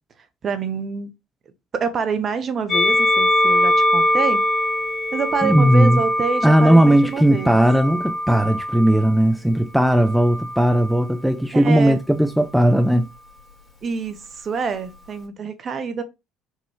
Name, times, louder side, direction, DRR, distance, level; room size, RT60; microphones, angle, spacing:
voice 1, 0.4-1.1 1.7-4.5 5.1-7.6 11.5-12.0 13.8-16.0, right 5 dB, 40° right, 0.8 m, -26 dB
Musical instrument, 2.7-9.1 9.9-10.9, left 1 dB, 30° left, 1.6 m, -22 dB
voice 2, 5.4-6.0 6.4-13.0, right 1 dB, ahead, 0.4 m, -17 dB
5.3 x 2.6 x 3.4 m
figure-of-eight pair, 55°, 0 cm